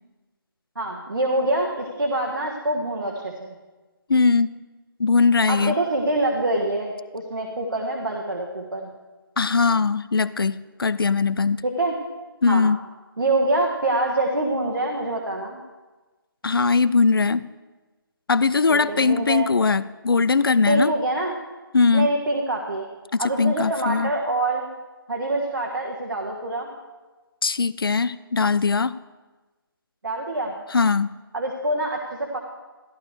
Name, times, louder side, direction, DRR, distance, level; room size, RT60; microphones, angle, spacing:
voice 1, 0.7-3.5 5.5-8.9 11.6-11.9 12.5-12.6 13.2-15.6 18.7-19.5 20.7-21.3 21.9-22.8 23.2-24.7 25.1-26.7 30.0-30.5 31.3-32.4, right 2 dB, 70° right, -1 dB, 1.4 m, -25 dB
voice 2, 4.1-4.5 5.0-5.8 9.4-11.6 12.4-12.8 16.4-17.4 18.3-20.9 21.7-22.1 23.1-24.1 27.4-29.0 30.7-31.1, left 4 dB, 70° left, 18 dB, 0.5 m, -20 dB
13.5 x 11.5 x 3.3 m, 1.2 s
figure-of-eight pair, 150°, 12 cm